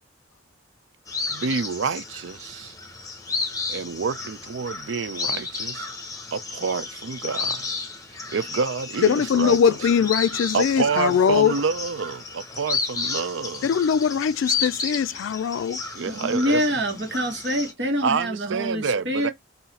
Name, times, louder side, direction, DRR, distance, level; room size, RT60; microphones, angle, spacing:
sound 1, 1.1-17.7, left 4 dB, 20° left, 0.9 m, -32 dB
voice 1, 1.3-2.8 3.7-5.9 6.3-7.7 8.3-9.6 10.5-13.7 15.9-16.6 18.0-19.3, right 5 dB, 80° right, 0.5 m, -28 dB
voice 2, 9.0-11.6 13.6-15.8, left 7 dB, 90° left, 0.3 m, -21 dB
voice 3, 16.1-19.3, equal, 60° right, 1.5 m, -25 dB
4.0 x 2.7 x 4.2 m
head